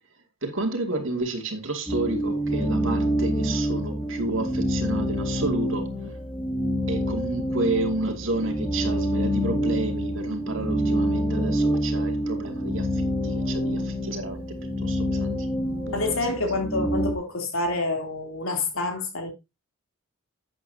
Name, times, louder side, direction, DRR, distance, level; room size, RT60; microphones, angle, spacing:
voice 1, 0.4-5.9 6.9-14.4 14.8-15.5 15.9-16.1, right 2 dB, 65° right, 2.5 m, -30 dB
sound 1, 1.9-17.1, equal, 5° right, 2.3 m, -27 dB
voice 2, 15.9-19.3, left 2 dB, 75° left, 3.3 m, -27 dB
12.0 x 8.7 x 2.8 m
head